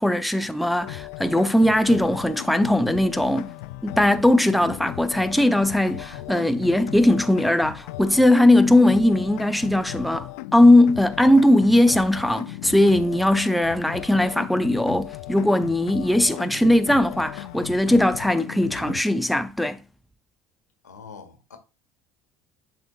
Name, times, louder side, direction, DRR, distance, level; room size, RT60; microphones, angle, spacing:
voice 1, 0.0-3.5 3.8-19.8, left 1 dB, ahead, 0.6 m, -19 dB
sound 1, 0.8-19.0, left 17 dB, 65° left, 0.5 m, -37 dB
voice 2, 20.8-21.6, left 5 dB, 85° left, 1.4 m, -44 dB
10.5 x 4.3 x 2.4 m
figure-of-eight pair, 65°, 9 cm